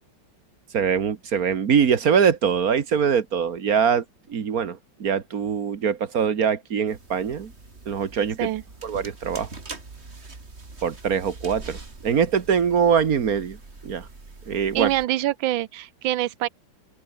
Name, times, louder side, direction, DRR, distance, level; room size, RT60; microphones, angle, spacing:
voice 1, 0.7-4.0 4.3-7.5 7.9-8.5 8.8-9.5 10.8-13.6 13.8-14.1 14.5-14.9, right 7 dB, 50° right, 1.8 m, -23 dB
sound 1, 6.9-15.1, right 3 dB, 35° right, 3.1 m, -43 dB
voice 2, 14.7-16.5, right 14 dB, 80° right, 1.5 m, -25 dB
open air
omnidirectional pair, 2.1 m